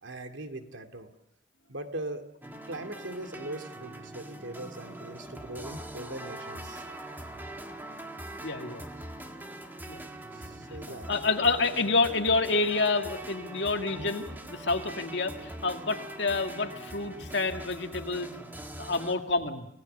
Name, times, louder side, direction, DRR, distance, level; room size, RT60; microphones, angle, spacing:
voice 1, 0.0-1.1 1.7-2.2 2.5-6.8 10.3-11.1, right 1 dB, 80° right, 6 dB, 2.3 m, -40 dB
sound 1, 2.4-19.1, right 1 dB, 10° right, 1.9 m, -42 dB
voice 2, 8.4-8.8 9.9-10.0 10.9-18.3 18.8-19.7, left 3 dB, 65° left, 4 dB, 2.2 m, -28 dB
29.5 x 17.5 x 6.8 m, 0.79 s
head